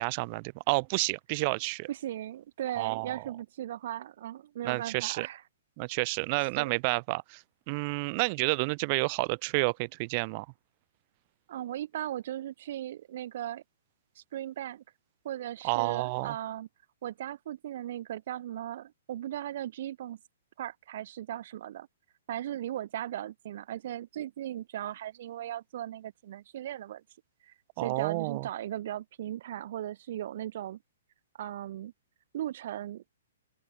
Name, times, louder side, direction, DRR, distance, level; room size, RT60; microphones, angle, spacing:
voice 1, 0.0-1.9 2.8-3.2 4.6-5.3 5.8-10.5 15.6-16.4 27.8-28.5, right 30 dB, 35° right, 1.9 m, -30 dB
voice 2, 1.9-5.4 6.6-6.7 11.5-13.6 14.2-14.8 15.2-16.7 17.0-20.2 20.6-21.9 22.3-27.0 27.4-30.8 31.4-31.9 32.3-33.0, right 12 dB, 55° right, 2.3 m, -37 dB
open air
hypercardioid pair, 145°, 0 cm